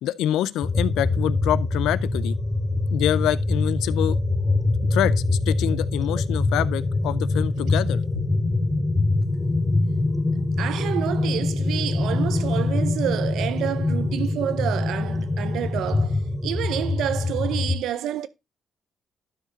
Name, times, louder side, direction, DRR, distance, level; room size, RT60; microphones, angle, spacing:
voice 1, 0.0-2.4 2.9-4.2 4.9-8.3, left 12 dB, 90° left, 0.5 m, -26 dB
sound 1, 0.6-17.8, left 2 dB, 10° left, 2.1 m, -24 dB
voice 2, 10.6-18.3, right 11 dB, 80° right, 0.7 m, -29 dB
12.0 x 5.0 x 3.9 m
cardioid pair, 90°, 0 cm